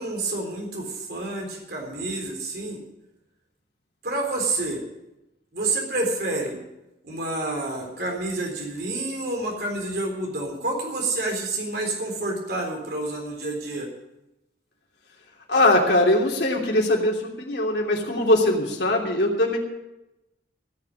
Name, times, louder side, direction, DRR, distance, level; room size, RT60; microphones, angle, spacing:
voice 1, 0.0-2.8 4.0-4.8 5.5-6.6 7.0-13.9, right 2 dB, 60° right, 1 dB, 3.8 m, -28 dB
voice 2, 15.5-19.6, left 1 dB, 70° left, -1 dB, 3.1 m, -21 dB
16.5 x 7.4 x 8.5 m, 0.92 s
head